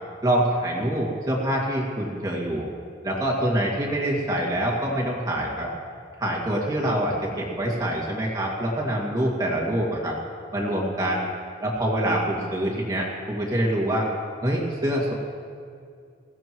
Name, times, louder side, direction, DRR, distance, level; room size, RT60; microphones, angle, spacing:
voice 1, 0.2-2.7 3.0-5.7 6.2-10.2 10.5-11.3 11.6-14.1 14.4-15.1, right 1 dB, 20° right, -4 dB, 2.2 m, -25 dB
21.5 x 16.0 x 3.1 m, 2.3 s
head